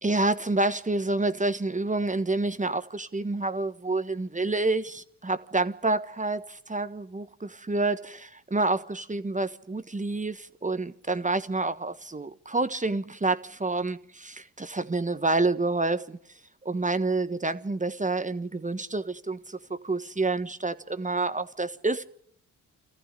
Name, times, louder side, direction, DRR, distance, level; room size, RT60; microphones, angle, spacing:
voice 1, 0.0-16.2 16.6-19.6 19.8-22.0, right 2 dB, 20° right, 1.4 m, -28 dB
24.5 x 14.5 x 9.9 m
supercardioid pair, 60°, 35 cm